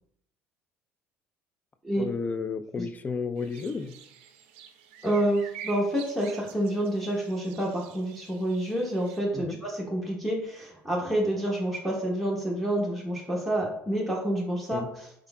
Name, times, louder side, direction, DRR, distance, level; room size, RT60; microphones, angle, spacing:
voice 1, 2.0-4.0 9.3-9.6 14.7-14.9, left 5 dB, 25° left, 10 dB, 0.3 m, -32 dB
sound 1, 3.4-9.2, right 9 dB, 75° right, 0.4 m, -48 dB
voice 2, 5.0-14.8, right 1 dB, ahead, -4 dB, 0.9 m, -28 dB
3.6 x 3.5 x 2.2 m, 0.70 s
hypercardioid pair, 65°, 6 cm